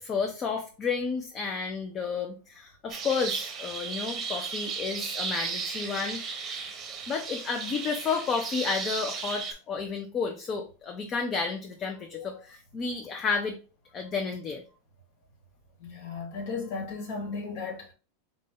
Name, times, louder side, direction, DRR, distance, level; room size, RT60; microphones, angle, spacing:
voice 1, 0.0-6.2 7.1-13.6 13.9-14.6, left 5 dB, 30° left, 0.6 m, -31 dB
sound 1, 2.9-9.5, right 5 dB, 25° right, 0.8 m, -35 dB
voice 2, 15.8-17.9, left 4 dB, 60° left, 1.7 m, -35 dB
4.2 x 2.6 x 3.7 m
supercardioid pair, 140°, 0 cm